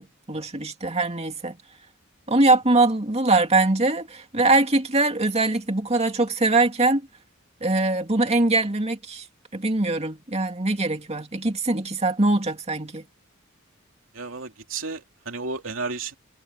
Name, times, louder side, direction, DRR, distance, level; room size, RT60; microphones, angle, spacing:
voice 1, 0.0-1.6 2.3-7.1 7.6-9.2 9.5-13.0, right 2 dB, 30° right, 2.5 m, -22 dB
voice 2, 14.1-16.1, right 4 dB, 70° right, 3.2 m, -32 dB
head